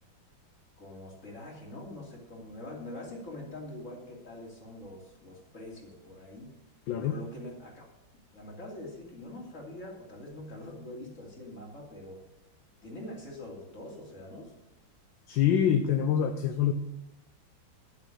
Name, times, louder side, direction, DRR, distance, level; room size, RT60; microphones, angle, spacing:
voice 1, 0.8-6.5 7.0-7.8 8.3-12.2 12.8-14.5, left 1 dB, 40° left, -2 dB, 3.2 m, -44 dB
voice 2, 15.3-16.7, left 9 dB, 75° left, 7 dB, 1.4 m, -25 dB
11.0 x 7.2 x 6.6 m, 0.89 s
omnidirectional pair, 2.2 m